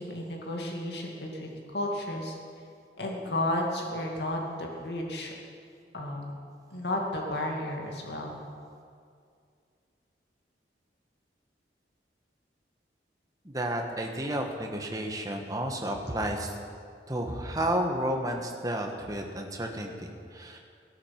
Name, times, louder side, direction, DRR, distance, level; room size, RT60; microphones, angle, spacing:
voice 1, 0.0-2.4 3.0-5.3 5.9-6.2 6.7-8.3, left 1 dB, 75° left, 0 dB, 2.3 m, -32 dB
voice 2, 13.4-16.5 17.1-20.6, right 1 dB, 20° right, 2 dB, 1.4 m, -31 dB
17.0 x 11.0 x 6.0 m, 2.3 s
head